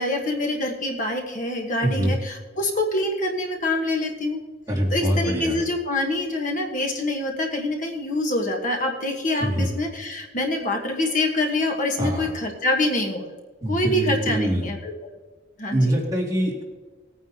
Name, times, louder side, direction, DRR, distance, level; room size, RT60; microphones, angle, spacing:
voice 1, 0.0-4.4 4.9-13.3 13.7-15.1 15.6-15.9, left 1 dB, 45° left, 1 dB, 1.3 m, -25 dB
voice 2, 1.8-2.1 4.7-5.6 9.4-9.8 12.0-12.3 13.6-14.7 15.7-16.6, right 1 dB, 20° right, -3 dB, 2.4 m, -24 dB
19.5 x 9.2 x 2.8 m, 1.3 s
head